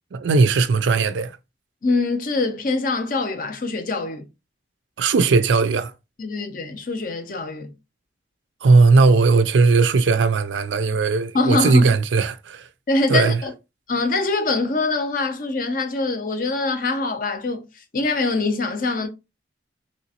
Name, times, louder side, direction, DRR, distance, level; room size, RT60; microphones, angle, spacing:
voice 1, 0.1-1.4 5.0-5.9 8.6-12.7 13.1-13.4, right 4 dB, 85° right, 0.4 m, -17 dB
voice 2, 1.8-4.2 6.2-7.7 11.3-11.9 12.9-13.5 13.9-17.7 17.9-19.1, left 3 dB, 45° left, 0.5 m, -23 dB
3.2 x 2.8 x 2.8 m
head